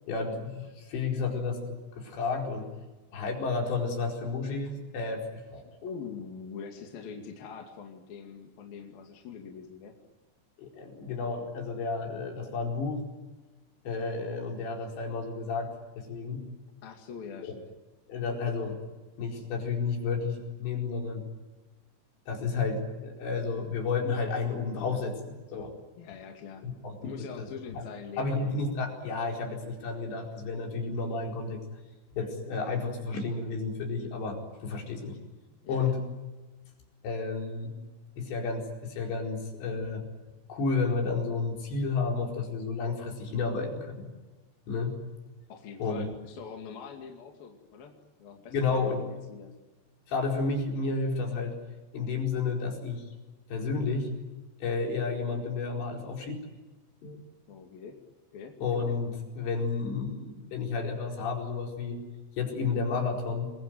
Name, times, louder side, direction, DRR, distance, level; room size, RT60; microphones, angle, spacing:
voice 1, 0.1-2.7 3.1-5.6 10.6-13.1 13.9-16.5 17.4-17.5 18.1-18.8 19.2-21.3 22.3-25.7 26.8-27.5 27.8-27.9 28.2-31.6 32.1-35.2 35.7-36.0 37.0-37.8 38.2-40.1 40.5-44.1 44.7-45.0 45.8-46.1 48.5-49.0 50.1-51.6 51.9-53.1 53.5-54.1 54.6-56.4 57.0-57.2 58.6-62.0 62.4-63.5, left 4 dB, 80° left, 1 dB, 6.9 m, -31 dB
voice 2, 5.8-9.9 16.8-17.7 26.0-26.7 27.0-28.5 35.6-36.0 45.5-47.9 48.2-49.5 57.5-58.0 58.3-58.6, left 6 dB, 60° left, 2 dB, 4.0 m, -43 dB
28.5 x 22.5 x 9.3 m, 1.2 s
omnidirectional pair, 5.0 m